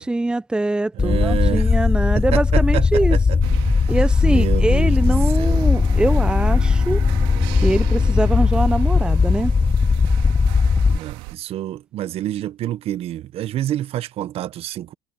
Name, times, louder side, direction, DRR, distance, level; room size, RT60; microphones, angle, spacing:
voice 1, 0.0-3.2 3.9-7.0 7.6-9.5, right 2 dB, 5° right, 0.7 m, -23 dB
voice 2, 0.9-1.8 2.1-4.0 4.2-5.7 10.8-14.9, right 13 dB, 50° right, 1.1 m, -28 dB
sound 1, 1.0-11.0, left 5 dB, 15° left, 0.3 m, -18 dB
sound 2, 3.4-11.3, right 24 dB, 80° right, 2.3 m, -36 dB
Bowed string instrument, 4.8-10.2, right 6 dB, 35° right, 3.7 m, -40 dB
supercardioid pair, 95°, 12 cm